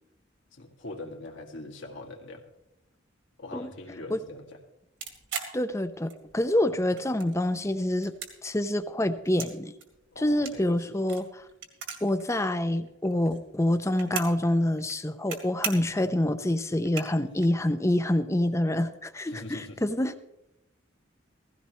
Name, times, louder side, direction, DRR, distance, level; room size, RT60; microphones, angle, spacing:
voice 1, 0.5-2.4 3.4-4.5 10.1-10.8 19.3-19.8, left 2 dB, 75° left, 0 dB, 2.1 m, -42 dB
sound 1, 5.0-6.4 6.8-7.6 7.9-9.5 9.8-12.2 12.5-12.6 12.8-14.4 14.8-15.4 15.6-16.0 16.5-16.6 16.8-17.5, right 6 dB, 65° right, 2.2 m, -37 dB
voice 2, 5.5-8.1 8.4-9.7 10.2-11.4 12.0-20.1, left 1 dB, 15° left, 10 dB, 0.6 m, -27 dB
16.5 x 15.5 x 3.2 m, 0.85 s
head